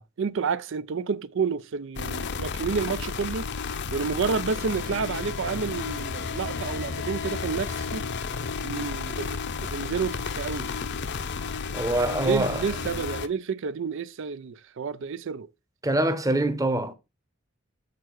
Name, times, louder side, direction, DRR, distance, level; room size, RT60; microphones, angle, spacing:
voice 1, 0.0-3.5 3.9-8.1 8.6-10.7 12.2-15.5, right 5 dB, 65° right, 0.5 m, -30 dB
sound 1, 2.0-13.3, left 5 dB, 55° left, 0.7 m, -32 dB
voice 2, 11.7-12.6 15.8-16.9, right 1 dB, 15° right, 0.9 m, -24 dB
7.6 x 6.7 x 4.6 m
head